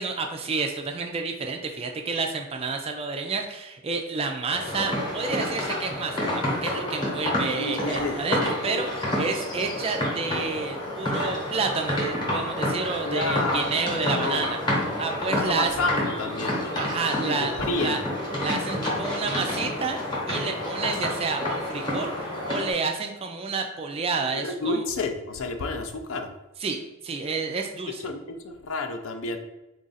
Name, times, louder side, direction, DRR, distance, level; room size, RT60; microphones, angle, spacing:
voice 1, 0.0-14.6 15.0-15.7 16.7-18.0 18.4-20.0 20.3-24.8 26.6-28.1, right 4 dB, 25° right, 3 dB, 0.3 m, -30 dB
sound 1, 4.5-22.7, left 1 dB, 20° left, 0.9 m, -29 dB
voice 2, 7.6-8.2 13.0-13.7 14.1-14.5 15.3-16.6 17.1-18.1 24.4-26.3 28.0-29.4, left 3 dB, 60° left, 6 dB, 0.4 m, -30 dB
3.8 x 2.4 x 4.0 m, 1.0 s
head